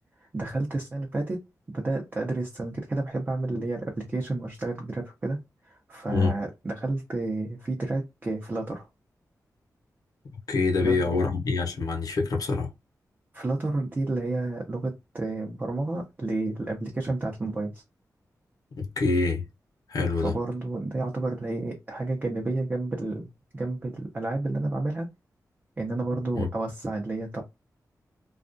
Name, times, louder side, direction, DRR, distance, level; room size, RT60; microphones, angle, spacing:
voice 1, 0.3-1.4 1.7-5.4 5.6-8.9 10.8-11.1 13.3-17.8 20.2-23.3 23.5-25.1 25.8-27.4, right 2 dB, 30° right, 0.6 m, -30 dB
voice 2, 10.5-12.7 18.7-19.4 19.9-20.3 26.3-26.5, left 4 dB, 75° left, 0.7 m, -25 dB
2.3 x 2.2 x 2.5 m
wide cardioid pair, 120°, 6 cm